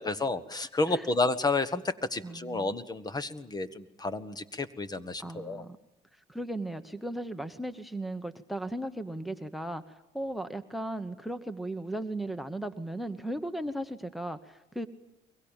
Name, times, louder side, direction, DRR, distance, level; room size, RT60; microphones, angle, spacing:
voice 1, 0.0-5.6, left 3 dB, 25° left, 14 dB, 1.4 m, -31 dB
voice 2, 2.2-2.7 5.2-5.8 6.1-14.9, right 1 dB, ahead, 13 dB, 1.1 m, -36 dB
23.5 x 22.0 x 9.0 m, 0.89 s
cardioid pair, 110°, 17 cm